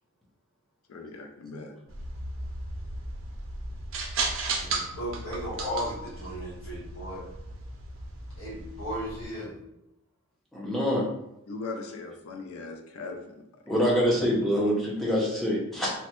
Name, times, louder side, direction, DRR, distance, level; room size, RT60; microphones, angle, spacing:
voice 1, 0.9-1.8 11.5-13.4, left 3 dB, 90° left, 4 dB, 0.4 m, -39 dB
sound 1, 1.9-9.3, right 3 dB, 70° right, 0.5 m, -35 dB
voice 2, 4.6-7.2 8.4-9.5, equal, 65° left, -8 dB, 1.3 m, -35 dB
voice 3, 10.5-11.0 13.7-15.9, equal, ahead, -5 dB, 0.6 m, -25 dB
3.1 x 2.1 x 2.9 m, 0.85 s
head